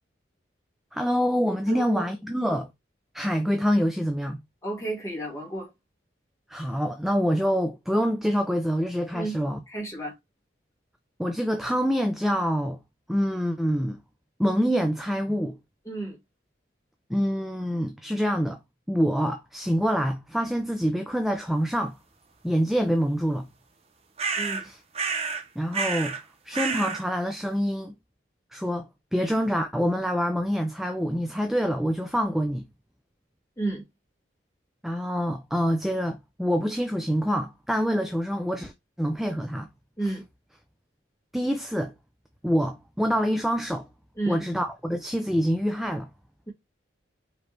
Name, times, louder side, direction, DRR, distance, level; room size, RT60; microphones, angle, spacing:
voice 1, 0.9-2.7 3.1-4.4 6.5-9.6 11.2-12.8 13.1-14.0 14.4-15.6 17.1-18.6 18.9-22.0 22.4-23.5 24.6-24.8 25.6-26.2 26.5-27.9 28.5-32.7 34.8-38.7 39.0-39.7 40.0-40.1 41.3-41.9 42.4-43.9 44.3-46.1, equal, ahead, 0.3 m, -26 dB
voice 2, 1.7-2.1 4.6-5.7 9.1-9.4 9.7-10.1 15.9-16.2 24.4-24.7 33.6-33.8 40.0-40.2 44.2-44.4, right 2 dB, 15° left, 1.8 m, -32 dB
sound 1, 24.2-24.6 25.0-25.5 25.7-26.2 26.5-27.0, right 5 dB, 30° right, 0.7 m, -29 dB
4.9 x 2.9 x 3.2 m
head